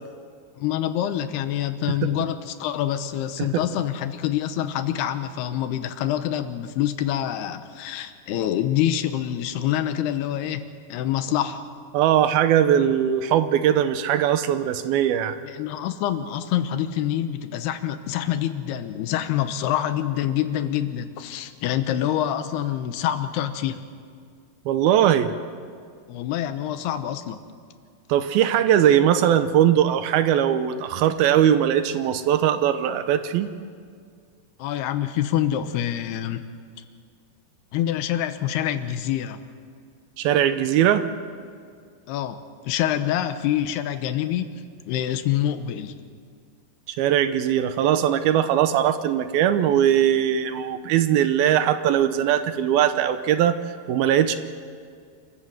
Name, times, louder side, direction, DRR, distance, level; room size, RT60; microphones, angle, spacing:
voice 1, 0.6-10.6 10.9-11.7 15.4-23.8 26.1-27.4 34.6-36.4 37.7-39.4 42.1-44.5 44.9-46.0, left 11 dB, 85° left, 10 dB, 3.0 m, -26 dB
voice 2, 11.9-15.4 24.7-25.3 28.1-33.5 40.2-41.0 47.0-53.6 53.9-54.3, right 10 dB, 80° right, 10 dB, 2.6 m, -20 dB
27.5 x 14.0 x 7.8 m, 2.1 s
omnidirectional pair, 4.6 m